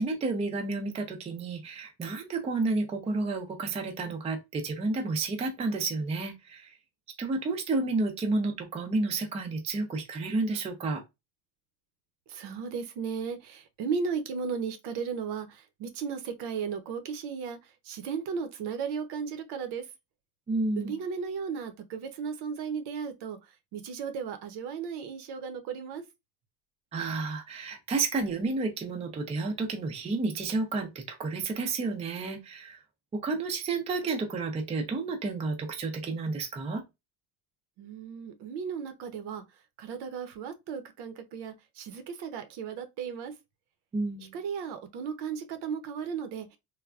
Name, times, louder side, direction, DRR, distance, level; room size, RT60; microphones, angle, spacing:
voice 1, 0.0-6.7 7.2-11.0 20.5-21.0 26.9-32.8 33.1-36.8 43.9-44.4, right 3 dB, 15° right, 0.4 m, -31 dB
voice 2, 12.3-19.9 20.8-23.4 23.7-26.0 37.8-39.4 39.8-43.3 44.2-46.6, right 6 dB, 70° right, 0.7 m, -35 dB
3.3 x 2.1 x 2.4 m
cardioid pair, 140°, 42 cm